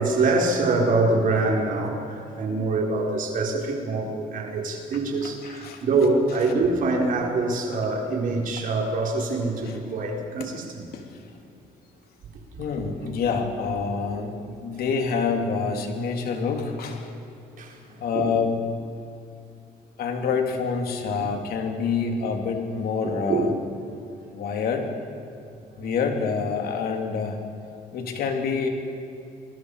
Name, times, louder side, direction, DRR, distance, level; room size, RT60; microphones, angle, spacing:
voice 1, 0.0-10.8 13.0-13.1 17.5-18.3 21.2-21.3 23.0-23.6, right 3 dB, 55° right, 0 dB, 4.9 m, -25 dB
voice 2, 5.4-5.8 9.7-9.8 10.9-11.0 12.6-17.1 18.0-18.6 20.0-23.5 24.3-24.9 25.8-27.4 27.9-28.7, left 5 dB, 65° left, 3 dB, 3.3 m, -27 dB
30.0 x 21.5 x 5.0 m, 2.6 s
cardioid pair, 110°, 17 cm